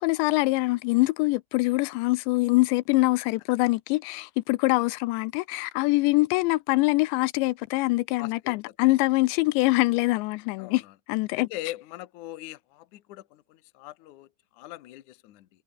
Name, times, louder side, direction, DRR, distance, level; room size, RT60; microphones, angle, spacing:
voice 1, 0.0-10.8 11.1-11.5, left 22 dB, 85° left, 2.9 m, -24 dB
voice 2, 8.2-8.6 10.6-10.9 11.3-15.5, left 16 dB, 65° left, 2.0 m, -41 dB
omnidirectional pair, 5.1 m